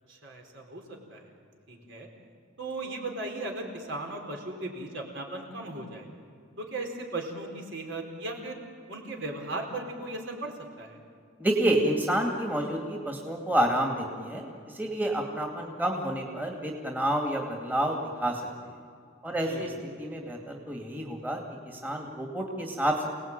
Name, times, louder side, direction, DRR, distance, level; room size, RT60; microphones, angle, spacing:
voice 1, 0.1-0.8 1.1-1.2 1.7-2.1 2.6-6.1 6.6-8.6 8.9-11.0 19.4-19.7, right 2 dB, 60° right, 2 dB, 4.5 m, -37 dB
voice 2, 11.4-18.4 19.2-19.7 20.0-23.1, right 1 dB, 10° right, 1 dB, 2.4 m, -29 dB
28.5 x 19.0 x 9.0 m, 2.3 s
head